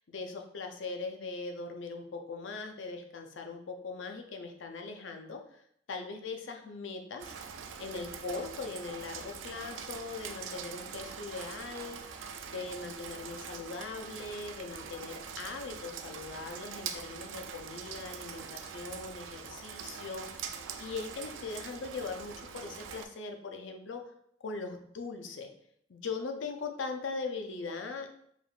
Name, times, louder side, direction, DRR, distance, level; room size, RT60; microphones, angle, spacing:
voice 1, 0.0-5.6 5.9-7.3 7.8-24.0 24.4-25.5 25.9-28.1, left 4 dB, 75° left, 4 dB, 0.6 m, -40 dB
Rain, 7.2-23.0, right 6 dB, 85° right, 0.4 m, -43 dB
5.0 x 3.4 x 2.5 m, 0.68 s
head